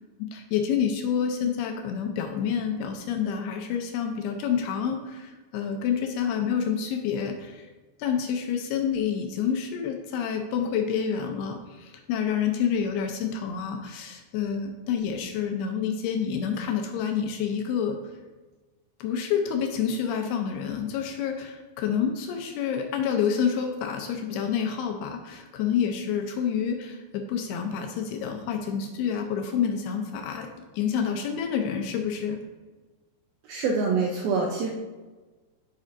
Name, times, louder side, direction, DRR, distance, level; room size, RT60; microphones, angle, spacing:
voice 1, 0.2-7.7 8.0-18.0 19.0-30.5 30.7-32.4, left 7 dB, 80° left, 4 dB, 2.5 m, -28 dB
voice 2, 33.5-34.7, right 4 dB, 80° right, 0 dB, 2.2 m, -25 dB
9.5 x 7.3 x 2.6 m, 1.3 s
omnidirectional pair, 5.0 m